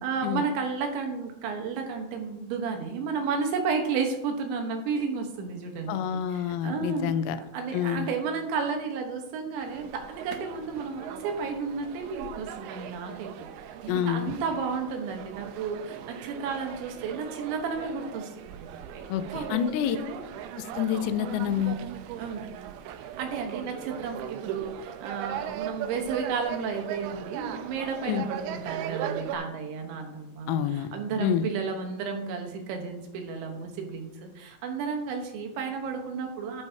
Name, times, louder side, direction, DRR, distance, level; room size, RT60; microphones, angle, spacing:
voice 1, 0.0-6.0 6.3-7.1 7.5-13.3 13.6-19.0 19.3-19.6 19.9-20.2 22.2-22.4 23.2-36.6, right 5 dB, 75° right, 3 dB, 3.2 m, -32 dB
voice 2, 5.9-7.4 7.7-8.1 13.9-14.3 19.1-20.0 20.6-21.8 28.1-28.3 30.5-30.9 31.2-31.4, left 10 dB, 90° left, 10 dB, 3.5 m, -28 dB
sound 1, 9.6-29.3, right 10 dB, 90° right, 2.6 m, -39 dB
13.0 x 11.5 x 2.8 m, 0.92 s
omnidirectional pair, 5.9 m